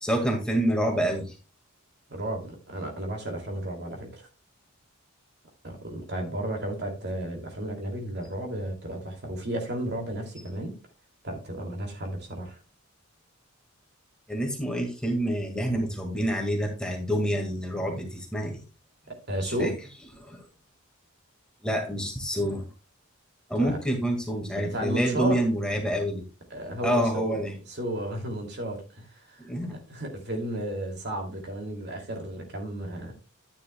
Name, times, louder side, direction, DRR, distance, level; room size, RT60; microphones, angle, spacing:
voice 1, 0.0-1.4 14.3-18.6 19.4-19.7 20.2-20.5 21.6-22.7 23.5-26.2 26.8-27.6 29.4-29.8, right 1 dB, 5° left, 1 dB, 1.8 m, -27 dB
voice 2, 2.1-4.3 5.6-10.8 11.2-12.6 19.1-19.7 23.6-23.8 24.6-25.4 26.5-27.4 27.7-29.4 29.9-33.1, right 1 dB, 50° right, 3 dB, 2.6 m, -33 dB
11.5 x 9.5 x 2.3 m, 0.32 s
head